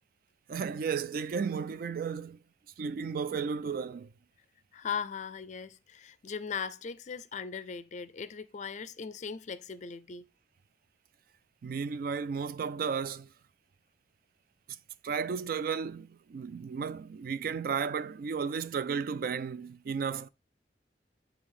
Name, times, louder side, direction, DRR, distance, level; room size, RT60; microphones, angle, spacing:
voice 1, 0.5-2.4 2.8-4.1 11.6-13.3 14.7-14.8 15.0-20.3, right 6 dB, 55° right, 0.3 m, -34 dB
voice 2, 4.7-10.3, left 6 dB, 45° left, 0.4 m, -38 dB
8.0 x 3.3 x 3.7 m
head